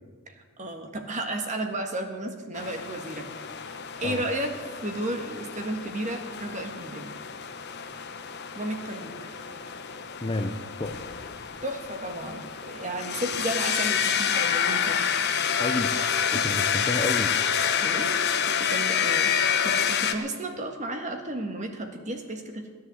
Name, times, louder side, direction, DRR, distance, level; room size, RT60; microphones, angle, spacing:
voice 1, 0.3-3.3 3.6-3.7 4.0-7.1 8.6-9.3 11.6-15.0 16.3-16.5 17.8-19.3 19.6-22.7, right 1 dB, 35° right, 5 dB, 1.7 m, -33 dB
sound 1, 2.5-20.1, left 7 dB, 50° left, 1.0 m, -28 dB
voice 2, 10.2-11.0 15.6-15.9 16.3-17.3, left 2 dB, 25° left, 7 dB, 0.6 m, -30 dB
17.0 x 10.5 x 7.8 m, 1.5 s
head